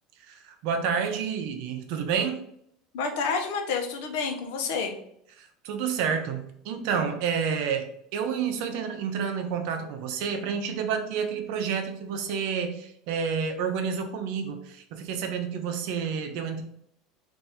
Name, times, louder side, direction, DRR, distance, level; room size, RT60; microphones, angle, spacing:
voice 1, 0.3-2.4 5.4-16.6, right 6 dB, 60° right, 6 dB, 0.7 m, -29 dB
voice 2, 2.9-5.0, left 5 dB, 70° left, 4 dB, 0.8 m, -29 dB
3.5 x 2.6 x 4.2 m, 0.70 s
cardioid pair, 160°, 0 cm